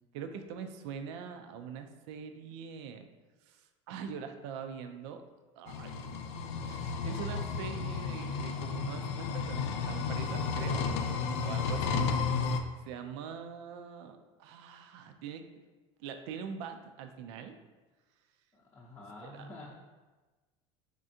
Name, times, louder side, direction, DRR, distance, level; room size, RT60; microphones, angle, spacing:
voice 1, 0.1-3.1 3.5-5.2 5.6-12.1 12.9-15.4 16.0-17.6 19.2-19.5, right 6 dB, 80° right, 6 dB, 0.4 m, -43 dB
sound 1, 5.7-12.6, left 5 dB, 85° left, 0.4 m, -33 dB
voice 2, 18.5-19.7, left 2 dB, 20° left, -5 dB, 0.6 m, -48 dB
3.7 x 3.3 x 2.7 m, 1.2 s
supercardioid pair, 120°, 14 cm